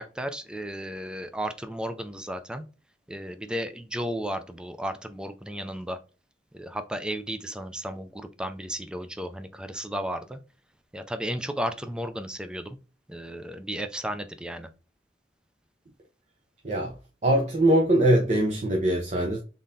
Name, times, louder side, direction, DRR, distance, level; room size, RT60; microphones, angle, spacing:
voice 1, 0.0-2.6 3.1-6.0 6.5-10.4 10.9-12.8 13.1-14.7, equal, 5° right, 0.4 m, -34 dB
voice 2, 17.2-19.4, right 1 dB, 40° right, 0.7 m, -22 dB
3.8 x 3.7 x 2.7 m
head